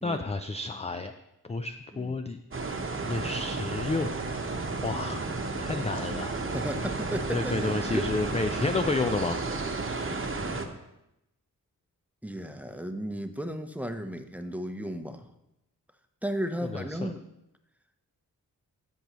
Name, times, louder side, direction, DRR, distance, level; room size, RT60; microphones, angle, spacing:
voice 1, 0.0-1.1 1.4-2.4 3.1-4.1 4.8-5.3 5.6-6.4 7.3-9.4 16.6-17.1, left 3 dB, 20° left, 8 dB, 0.4 m, -30 dB
sound 1, 2.5-10.7, right 3 dB, 35° right, 1.0 m, -32 dB
voice 2, 6.5-8.1 12.2-15.3 16.2-17.2, equal, 5° right, 7 dB, 0.8 m, -34 dB
13.0 x 5.4 x 3.0 m, 0.87 s
cardioid pair, 55°, 37 cm